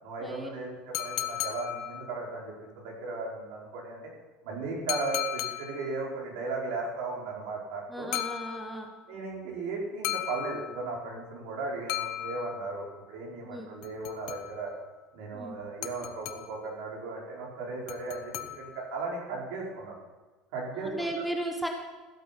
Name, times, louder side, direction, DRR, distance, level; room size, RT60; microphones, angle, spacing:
voice 1, 0.0-4.1 4.4-8.1 9.1-14.7 15.1-20.0 20.5-21.1, right 3 dB, 75° right, -2 dB, 4.7 m, -36 dB
sound 1, 0.9-2.4 4.9-6.0 8.1-9.0 10.0-11.1 11.9-12.9 13.8-14.8 15.8-16.7 17.9-19.0, left 13 dB, 65° left, 1.0 m, -36 dB
voice 2, 7.9-8.9 13.5-13.7 15.3-15.6 20.8-21.7, right 1 dB, ahead, 3 dB, 1.3 m, -35 dB
15.0 x 8.2 x 5.9 m, 1.3 s
cardioid pair, 140°, 0 cm